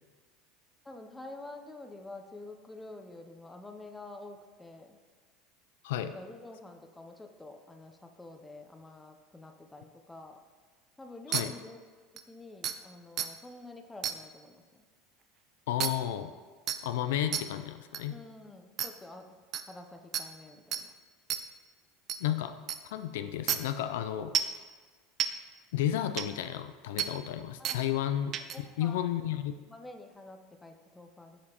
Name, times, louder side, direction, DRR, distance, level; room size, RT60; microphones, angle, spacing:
voice 1, 0.8-5.0 6.1-10.4 11.0-11.8 12.3-14.8 18.1-19.4 19.7-20.9 27.6-27.8 28.5-29.0 29.7-31.4, left 2 dB, 10° left, 5 dB, 0.6 m, -48 dB
voice 2, 5.8-6.2 11.3-11.5 15.7-16.3 16.8-18.2 22.2-22.5 22.8-24.3 25.7-29.6, left 11 dB, 85° left, 9 dB, 0.3 m, -32 dB
sound 1, 11.3-11.4 12.2-12.3 12.6-12.7 13.2-13.3 14.0-14.2 15.8-15.9 16.7-16.8 17.3-17.4 17.9-18.0 18.8-18.9 19.5-19.6 20.1-20.2 20.7-20.8 21.3-21.4 22.1-22.2 22.7-22.8 23.5-23.6 24.3-24.6 25.2-25.3 26.2-26.3 27.0-27.1 27.6-27.8 28.3-28.6, right 9 dB, 45° right, 0.4 m, -30 dB
6.9 x 5.0 x 2.9 m, 1.5 s
supercardioid pair, 105°, 0 cm